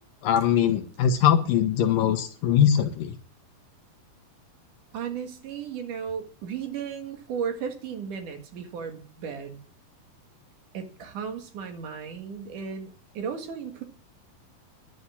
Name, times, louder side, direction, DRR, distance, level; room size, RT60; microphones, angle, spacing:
voice 1, 0.2-3.1, left 9 dB, 75° left, 7 dB, 2.7 m, -22 dB
voice 2, 4.9-9.6 10.7-13.8, right 7 dB, 65° right, 6 dB, 3.2 m, -35 dB
11.5 x 9.3 x 7.1 m, 0.40 s
omnidirectional pair, 4.2 m